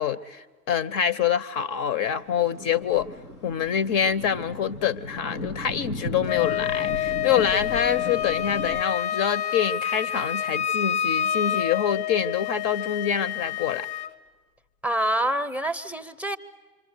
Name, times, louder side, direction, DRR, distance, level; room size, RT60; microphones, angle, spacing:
voice 1, 0.0-3.1 3.4-13.9, left 8 dB, 45° left, 0.8 m, -26 dB
Thunder, 2.0-8.8, left 1 dB, 90° left, 2.3 m, -36 dB
Wind instrument woodwind instrument, 6.2-14.1, left 10 dB, 70° left, 1.2 m, -28 dB
voice 2, 14.8-16.4, right 1 dB, 5° right, 0.8 m, -26 dB
26.5 x 25.0 x 8.2 m
figure-of-eight pair, 80°, 45 cm